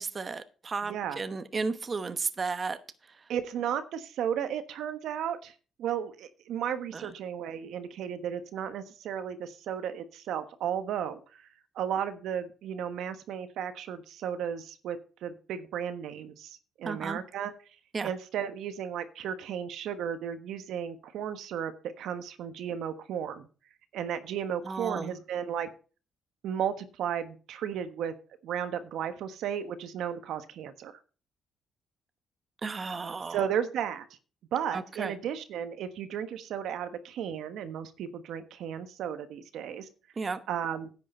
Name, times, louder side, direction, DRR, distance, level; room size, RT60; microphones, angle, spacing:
voice 1, 0.0-2.8 3.1-3.2 6.9-7.1 16.8-17.2 17.9-18.1 24.6-25.1 32.6-33.4 34.7-35.1 40.2-40.4, right 4 dB, 35° right, 11 dB, 0.9 m, -34 dB
voice 2, 0.9-1.2 3.3-5.5 5.8-11.5 11.7-17.5 18.0-23.5 23.9-25.7 26.4-28.1 28.4-31.0 33.3-34.0 34.5-39.9 40.5-40.9, right 9 dB, 80° right, 10 dB, 1.2 m, -34 dB
10.5 x 8.5 x 4.4 m, 0.36 s
cardioid pair, 90°, 0 cm